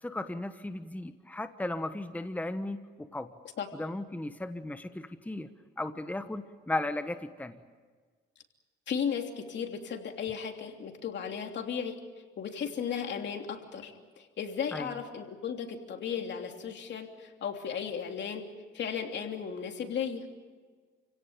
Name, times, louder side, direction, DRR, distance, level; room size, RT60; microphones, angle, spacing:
voice 1, 0.0-3.3 3.7-5.5 5.8-7.6 14.7-14.9, left 2 dB, 10° left, 9 dB, 1.2 m, -36 dB
voice 2, 8.9-12.0 12.4-18.5 18.7-20.2, left 7 dB, 65° left, 4 dB, 3.1 m, -35 dB
29.5 x 17.0 x 9.0 m, 1.5 s
cardioid pair, 90°, 20 cm